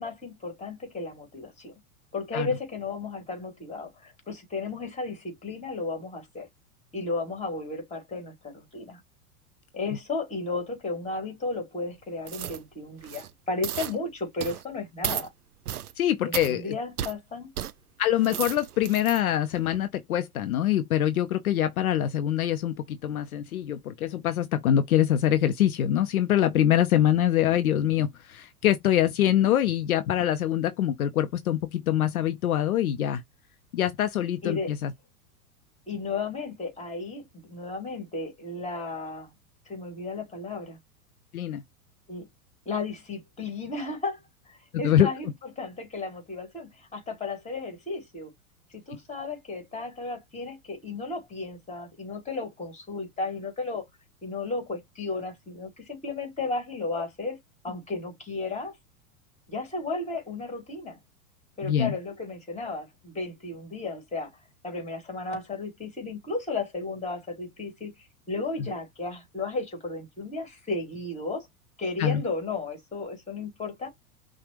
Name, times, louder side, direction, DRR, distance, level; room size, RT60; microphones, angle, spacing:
voice 1, 0.0-1.7 2.1-6.5 6.9-9.0 9.7-15.3 16.2-17.5 34.4-34.7 35.9-39.3 39.7-40.8 42.1-42.3 42.7-45.3 45.6-48.3 48.7-53.9 54.2-57.4 57.6-58.8 59.5-61.0 61.6-64.3 64.6-71.5 71.8-73.9, left 3 dB, 15° left, 2.5 m, -34 dB
sound 1, 12.3-12.6 13.0-13.3 13.6-13.9 14.4-14.6 15.0-15.3 15.7-15.9 16.3-16.5 17.0-17.1 17.6-17.7 18.1-19.2 19.7-19.8, right 10 dB, 85° right, 0.6 m, -33 dB
voice 2, 16.0-16.8 18.0-33.2 33.7-34.9 41.3-41.6 44.8-45.1 61.6-61.9 72.0-72.2, left 11 dB, 75° left, 0.7 m, -24 dB
5.8 x 2.4 x 3.0 m
figure-of-eight pair, 95°, 44 cm